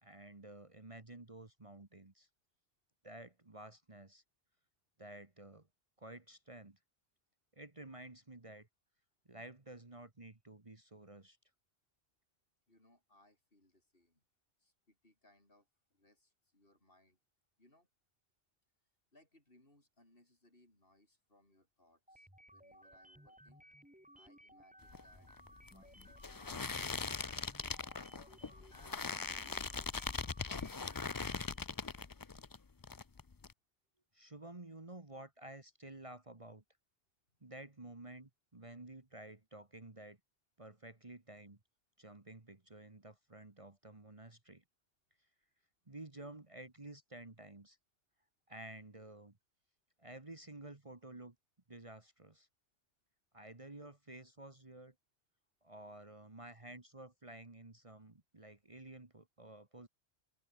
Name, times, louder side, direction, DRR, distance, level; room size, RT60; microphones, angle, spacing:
voice 1, 0.0-2.3 3.0-4.2 5.0-5.7 6.0-6.8 7.5-8.7 9.2-11.4 34.1-36.6 37.4-40.2 40.6-41.6 42.0-44.6 45.9-47.8 48.5-49.4 50.0-51.3 51.7-52.5 53.3-54.9 55.6-59.9, right 2 dB, 30° right, 1.8 m, -52 dB
voice 2, 12.7-14.2 14.6-17.2 17.6-17.9 19.1-23.7 24.2-25.3 25.7-28.1, left 1 dB, 55° left, 6.4 m, -70 dB
sound 1, 22.1-31.6, equal, 5° right, 3.8 m, -60 dB
sound 2, 24.8-32.6 32.8-33.5, left 4 dB, 25° left, 0.5 m, -41 dB
open air
omnidirectional pair, 1.1 m